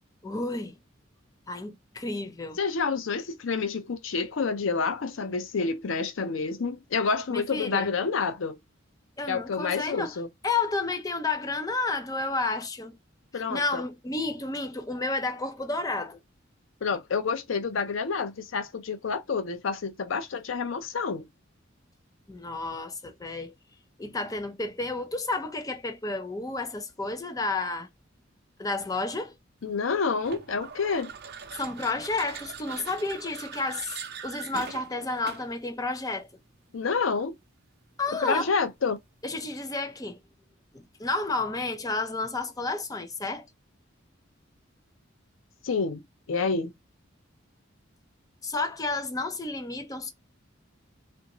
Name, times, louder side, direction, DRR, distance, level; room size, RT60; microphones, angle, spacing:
voice 1, 0.2-0.8 1.5-2.6 7.3-7.9 9.2-10.2 10.4-13.0 13.3-16.2 22.3-23.5 24.0-27.9 28.6-29.3 31.6-34.0 34.2-36.3 38.0-38.5 39.2-40.2 40.7-43.4 48.4-50.1, left 3 dB, 20° left, 0.6 m, -31 dB
voice 2, 2.6-8.6 9.3-10.3 13.3-13.8 16.8-21.3 29.6-31.1 36.7-37.3 38.2-39.0 45.6-46.0 46.3-46.7, left 5 dB, 80° left, 0.5 m, -28 dB
sound 1, 30.2-35.6, right 6 dB, 55° right, 0.6 m, -42 dB
3.4 x 2.5 x 2.9 m
head